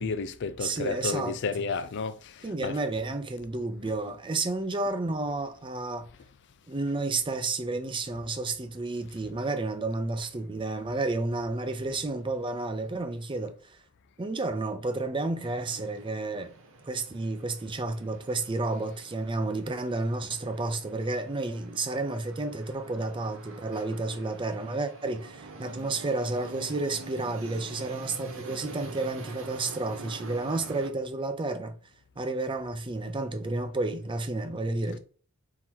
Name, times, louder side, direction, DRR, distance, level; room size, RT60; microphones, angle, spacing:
voice 1, 0.0-2.8, left 4 dB, 55° left, 0.4 m, -32 dB
voice 2, 0.6-1.3 2.4-6.1 6.7-13.8 14.2-16.5 16.8-31.8 32.2-35.0, right 2 dB, 20° right, 0.5 m, -31 dB
sound 1, 15.4-30.9, right 2 dB, 60° right, 0.9 m, -46 dB
3.8 x 2.9 x 4.5 m
head